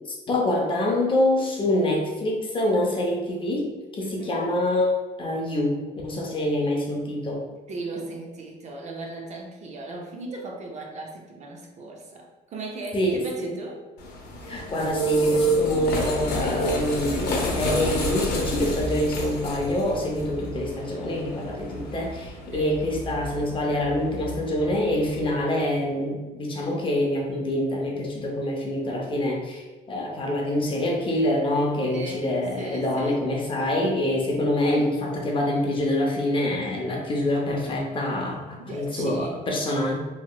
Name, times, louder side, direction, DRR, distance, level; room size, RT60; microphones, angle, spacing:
voice 1, 0.0-4.9 5.2-7.4 12.9-13.5 14.5-40.0, left 1 dB, 30° left, -1 dB, 0.6 m, -26 dB
voice 2, 4.0-4.4 7.7-13.8 22.5-22.8 31.8-32.3 32.6-33.3 38.6-39.4, right 2 dB, 45° right, 1 dB, 0.5 m, -37 dB
sound 1, 14.0-25.4, right 1 dB, 75° left, 0.7 m, -29 dB
2.9 x 2.8 x 2.2 m, 1.2 s
cardioid pair, 110°, 17 cm